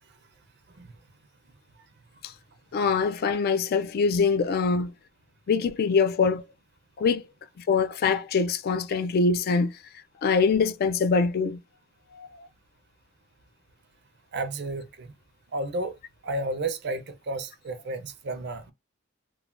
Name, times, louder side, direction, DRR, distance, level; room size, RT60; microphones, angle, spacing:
voice 1, 2.7-4.9 5.5-6.4 7.0-7.3 7.7-9.7 10.2-11.6 12.1-12.5, left 5 dB, 50° left, 0.3 m, -24 dB
voice 2, 14.3-15.1 15.5-18.7, right 2 dB, 55° right, 0.5 m, -32 dB
3.2 x 2.1 x 2.4 m
head